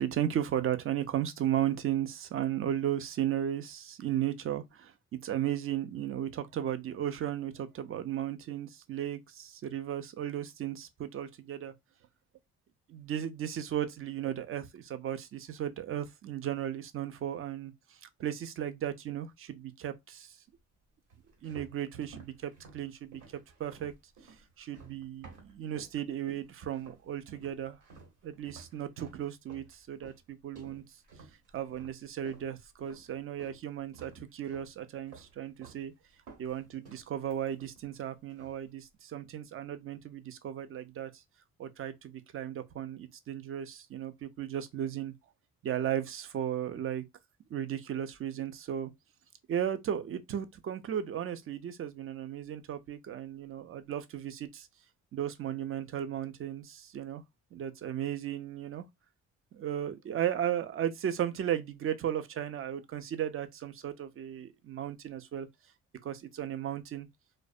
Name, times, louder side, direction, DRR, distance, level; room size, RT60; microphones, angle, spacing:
voice 1, 0.0-4.9 5.2-11.7 12.9-20.4 21.4-23.2 23.6-23.9 24.6-27.8 28.2-30.8 31.5-35.9 36.4-41.2 41.6-45.1 45.6-47.0 47.5-48.9 49.5-54.7 55.1-57.2 57.5-58.9 59.5-65.5 66.0-67.1, right 10 dB, 45° right, 0.5 m, -35 dB
sound 1, 21.1-26.0 26.3-27.1 27.4-33.6 33.9-34.7 35.1-35.8 36.1-38.0 38.3-38.7, right 4 dB, 85° right, 1.2 m, -54 dB
2.5 x 2.1 x 2.3 m
cardioid pair, 90°, 30 cm